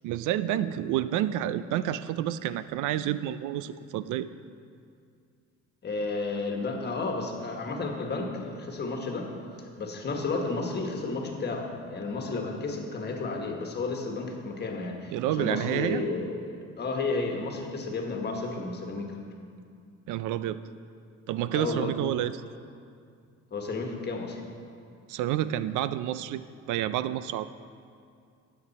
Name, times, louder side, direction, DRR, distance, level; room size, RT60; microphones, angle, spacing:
voice 1, 0.0-4.3 15.1-16.1 20.1-20.6 21.3-22.4 25.1-26.4 26.7-27.5, right 12 dB, 80° right, 14 dB, 0.5 m, -29 dB
voice 2, 5.8-9.3 9.6-19.2 21.5-21.9 23.5-24.4, left 3 dB, 35° left, 2 dB, 1.4 m, -32 dB
13.0 x 7.8 x 4.1 m, 2.3 s
cardioid pair, 125°, 30 cm